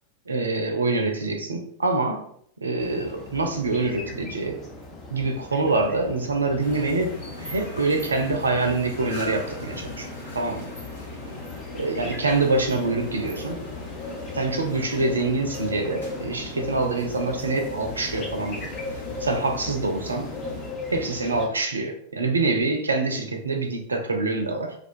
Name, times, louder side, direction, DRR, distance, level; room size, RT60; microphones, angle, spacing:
voice 1, 0.3-2.3 2.6-4.6 5.1-10.7 11.7-13.6 14.3-18.7 19.2-20.3 20.9-24.7, right 3 dB, 75° right, 4 dB, 0.4 m, -25 dB
sound 1, 2.8-21.5, left 2 dB, 25° left, 0.6 m, -38 dB
sound 2, 6.6-20.7, left 2 dB, 70° left, 0.9 m, -39 dB
2.2 x 2.2 x 2.6 m, 0.64 s
figure-of-eight pair, 90°, 0 cm